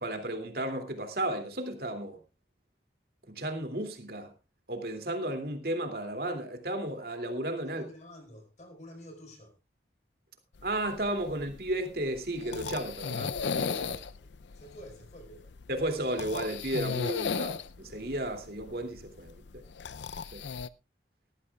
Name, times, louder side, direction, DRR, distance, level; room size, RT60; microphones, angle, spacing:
voice 1, 0.0-2.2 3.3-4.3 4.7-7.8 10.6-14.0 15.7-19.6 20.3-20.4, right 1 dB, 55° right, 2.7 m, -34 dB
voice 2, 7.6-9.6 14.2-15.5, equal, 40° left, 4.8 m, -50 dB
sound 1, 10.6-20.7, left 5 dB, 85° left, 0.6 m, -37 dB
18.5 x 13.5 x 2.4 m
head